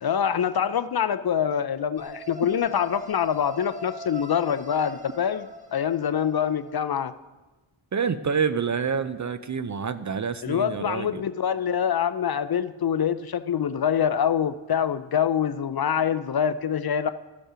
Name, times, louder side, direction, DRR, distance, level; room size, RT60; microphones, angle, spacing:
voice 1, 0.0-5.5 5.7-7.1 10.4-17.1, left 8 dB, 50° left, 13 dB, 0.4 m, -25 dB
sound 1, 2.0-6.9, right 1 dB, 15° right, 0.9 m, -42 dB
voice 2, 7.9-11.2, right 6 dB, 40° right, 13 dB, 0.4 m, -27 dB
13.5 x 5.3 x 4.9 m, 1.2 s
wide cardioid pair, 55°, 49 cm